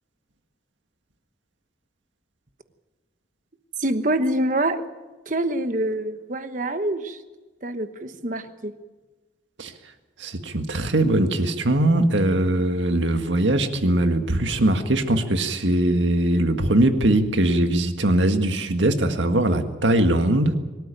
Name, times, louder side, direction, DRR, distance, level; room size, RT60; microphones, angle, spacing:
voice 1, 3.8-4.8 5.3-7.2 7.6-8.7, right 1 dB, 45° right, 9 dB, 1.2 m, -25 dB
voice 2, 10.2-20.6, right 1 dB, 85° right, 6 dB, 1.8 m, -21 dB
24.5 x 13.0 x 9.1 m, 1.2 s
head